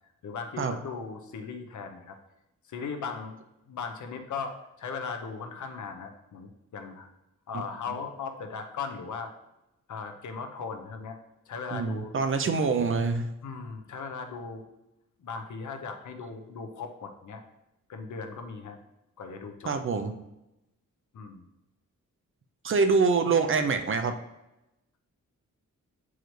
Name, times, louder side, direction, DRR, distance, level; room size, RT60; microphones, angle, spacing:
voice 1, 0.2-2.2 2.7-3.4 3.7-7.1 7.5-9.3 9.9-11.2 11.5-12.1 13.4-14.6 15.2-17.4 17.9-18.8 19.2-19.7 21.1-21.5, left 5 dB, 70° left, 6 dB, 0.8 m, -38 dB
voice 2, 11.7-13.3 19.7-20.1 22.6-24.1, right 4 dB, 45° right, 7 dB, 0.5 m, -25 dB
7.7 x 4.8 x 3.1 m, 0.91 s
wide cardioid pair, 175°, 31 cm